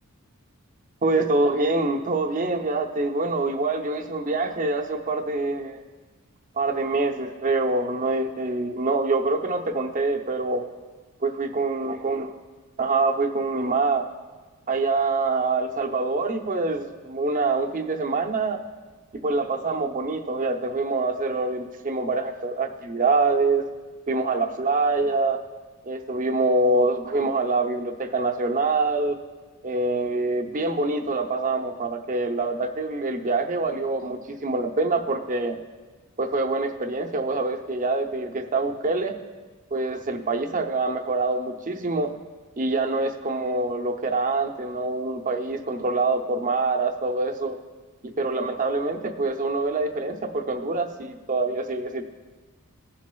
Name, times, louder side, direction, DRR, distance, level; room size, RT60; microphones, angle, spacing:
voice 1, 1.0-5.8 6.6-10.7 11.2-12.3 12.8-14.0 14.7-18.6 19.1-23.6 24.1-25.4 25.8-29.2 29.6-35.6 36.2-39.2 39.7-42.1 42.6-47.6 48.2-52.0, right 3 dB, 35° right, 4 dB, 0.7 m, -25 dB
19.5 x 7.3 x 2.3 m, 1.3 s
head